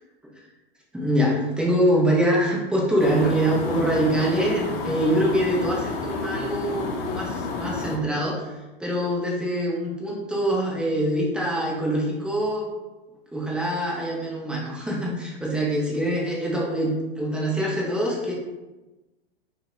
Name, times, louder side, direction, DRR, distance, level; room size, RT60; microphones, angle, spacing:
voice 1, 0.9-8.5 8.8-12.7 13.3-18.3, right 1 dB, 5° right, -4 dB, 0.3 m, -24 dB
sound 1, 3.0-8.0, left 3 dB, 80° left, 0.5 m, -30 dB
2.6 x 2.0 x 2.3 m, 1.1 s
hypercardioid pair, 110°, 30 cm